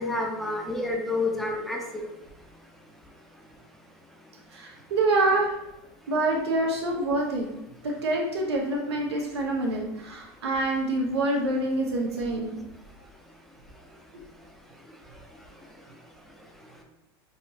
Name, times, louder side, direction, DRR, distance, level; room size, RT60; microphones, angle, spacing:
voice 1, 0.0-2.0, left 2 dB, ahead, 0 dB, 0.8 m, -29 dB
voice 2, 4.5-5.5 6.1-7.5 7.8-12.6, right 2 dB, 90° right, 0 dB, 0.7 m, -26 dB
5.1 x 2.4 x 2.7 m, 0.86 s
hypercardioid pair, 95°, 13 cm